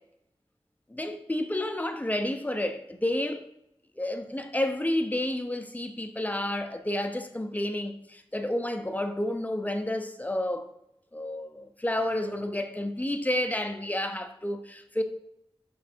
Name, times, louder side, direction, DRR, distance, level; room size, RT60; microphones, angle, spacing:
voice 1, 0.9-3.4 4.0-10.7 11.1-15.0, left 1 dB, 15° left, 0.9 m, -30 dB
6.0 x 5.5 x 4.5 m
wide cardioid pair, 55°, 10 cm